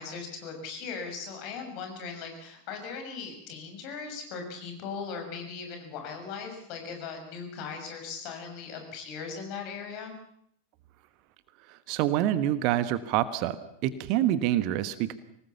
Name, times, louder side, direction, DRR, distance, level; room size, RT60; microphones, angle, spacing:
voice 1, 0.0-10.1, left 5 dB, 40° left, 4 dB, 6.5 m, -39 dB
voice 2, 11.7-13.5 13.8-15.1, right 12 dB, 45° right, 14 dB, 1.3 m, -26 dB
25.0 x 19.0 x 7.1 m, 0.71 s
figure-of-eight pair, 90°, 0 cm